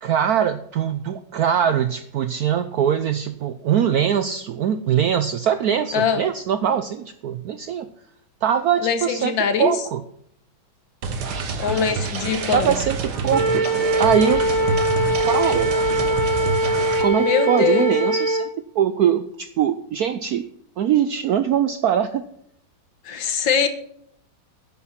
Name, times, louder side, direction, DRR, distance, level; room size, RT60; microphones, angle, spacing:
voice 1, 0.0-7.9 8.4-9.3 9.6-10.0 12.5-13.7 14.0-14.6 15.2-15.7 17.0-18.5 18.8-20.4 20.8-22.2, right 9 dB, 75° right, 11 dB, 0.8 m, -22 dB
voice 2, 8.8-9.7 11.6-12.8 17.2-17.9 23.1-23.7, left 6 dB, 70° left, 9 dB, 1.9 m, -22 dB
sound 1, 11.0-17.0, right 4 dB, 60° right, 1.7 m, -27 dB
Wind instrument woodwind instrument, 13.3-18.5, right 1 dB, 30° left, 3.1 m, -21 dB
10.5 x 9.3 x 5.8 m, 0.71 s
omnidirectional pair, 2.2 m